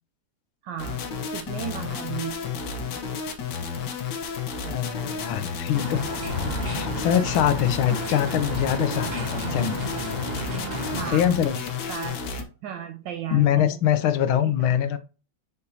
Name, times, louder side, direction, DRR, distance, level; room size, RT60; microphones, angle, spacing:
voice 1, 0.6-2.7 10.9-11.4 11.9-12.2 12.6-13.7 14.4-14.8, right 10 dB, 75° right, 1.2 m, -35 dB
sound 1, 0.8-12.4, left 6 dB, 60° left, 1.5 m, -32 dB
voice 2, 4.6-6.0 6.6-9.8 11.1-11.6 13.3-15.0, left 10 dB, 75° left, 1.5 m, -23 dB
sound 2, 5.7-11.1, equal, 10° right, 2.9 m, -32 dB
sound 3, 5.7-11.7, right 2 dB, 45° right, 2.5 m, -45 dB
6.8 x 5.2 x 2.7 m
omnidirectional pair, 2.3 m